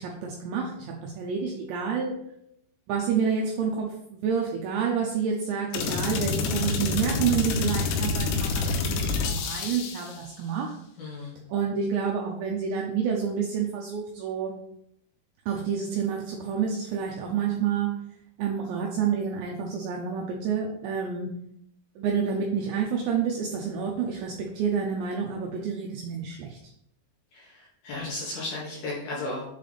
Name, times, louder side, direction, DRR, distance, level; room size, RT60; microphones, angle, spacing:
voice 1, 0.0-2.1 2.9-10.8 11.1-11.2 11.5-14.6 15.5-17.9 18.4-21.3 22.0-26.6, right 6 dB, 85° right, 0 dB, 2.5 m, -29 dB
sound 1, 5.7-10.2, left 4 dB, 85° left, 3.3 m, -27 dB
voice 2, 11.0-11.4 27.3-29.4, left 2 dB, 70° left, -6 dB, 2.5 m, -35 dB
7.4 x 3.3 x 4.0 m, 0.76 s
omnidirectional pair, 5.9 m